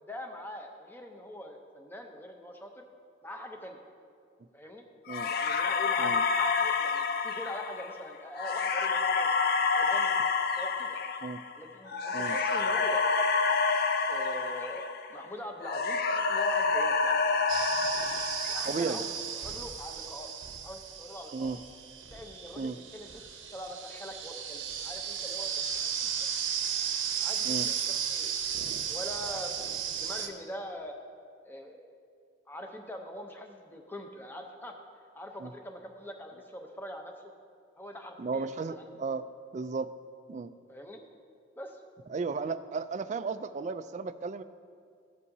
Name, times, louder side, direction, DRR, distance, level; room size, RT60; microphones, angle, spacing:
voice 1, 0.0-2.8 3.2-3.8 4.5-4.8 5.3-9.3 9.7-10.1 10.6-11.0 11.6-13.0 14.1-17.2 18.5-19.0 19.4-20.3 20.6-21.6 22.1-26.1 27.2-28.3 28.9-29.5 29.8-31.0 31.4-31.9 32.5-34.7 35.1-37.3 37.8-38.7 38.9-39.0 40.7-41.0 41.6-41.8, equal, 10° left, 3 dB, 0.7 m, -43 dB
sound 1, 5.1-15.3 15.6-19.0, left 4 dB, 50° left, 0.4 m, -28 dB
sound 2, 17.5-30.3, right 8 dB, 80° right, 0.9 m, -35 dB
voice 2, 18.7-19.0 21.3-21.6 22.6-22.8 27.4-27.7 35.4-35.5 38.2-39.3 39.5-39.9 40.3-40.5 42.1-44.4, right 4 dB, 40° right, 12 dB, 0.3 m, -34 dB
15.0 x 8.3 x 2.7 m, 2.2 s
head